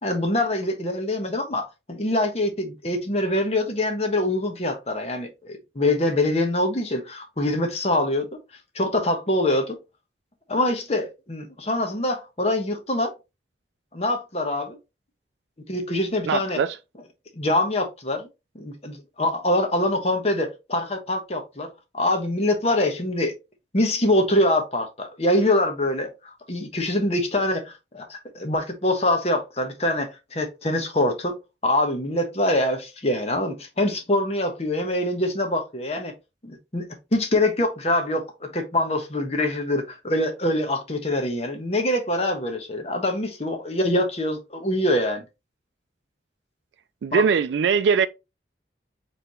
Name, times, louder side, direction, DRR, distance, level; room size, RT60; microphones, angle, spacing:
voice 1, 0.0-8.4 8.7-9.8 10.5-13.1 13.9-14.8 15.7-16.6 17.4-18.3 18.5-21.7 21.9-23.3 23.7-31.3 31.6-36.1 36.4-45.2 47.1-47.2, left 1 dB, 35° left, 1.0 m, -24 dB
voice 2, 16.2-16.8 47.0-48.1, right 6 dB, 80° right, 0.3 m, -21 dB
4.9 x 3.3 x 3.0 m
head